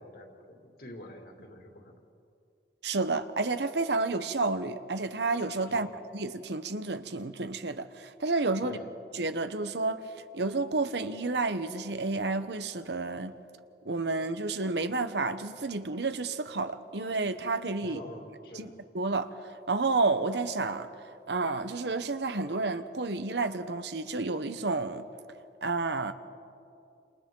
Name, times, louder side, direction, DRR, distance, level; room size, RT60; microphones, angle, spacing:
voice 1, 0.0-2.0 5.7-5.9 8.6-8.9 17.8-18.8, equal, 60° left, 2.7 m, -46 dB
voice 2, 2.8-5.9 6.1-8.8 9.1-10.0 10.3-13.4 13.8-18.0 18.6-18.7 18.9-19.4 19.7-20.9 21.3-25.0 25.6-26.1, right 3 dB, 80° right, 1.0 m, -30 dB
30.0 x 27.5 x 3.9 m
head